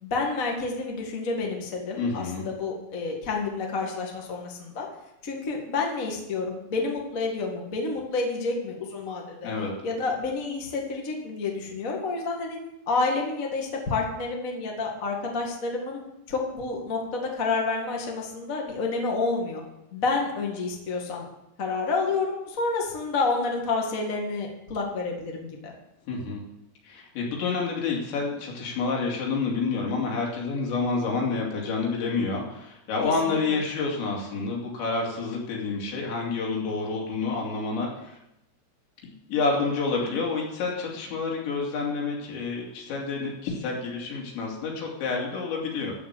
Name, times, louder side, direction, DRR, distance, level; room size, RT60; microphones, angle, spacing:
voice 1, 0.0-4.9 5.2-9.5 9.8-12.6 12.9-16.0 16.3-19.6 19.9-21.3 21.6-25.7 33.2-33.6, left 3 dB, 60° left, 0 dB, 0.8 m, -29 dB
voice 2, 2.0-2.5 9.4-9.7 26.1-26.4 26.8-38.2 39.0-45.9, left 4 dB, 80° left, -2 dB, 4.7 m, -29 dB
14.0 x 5.2 x 8.1 m, 0.87 s
omnidirectional pair, 5.1 m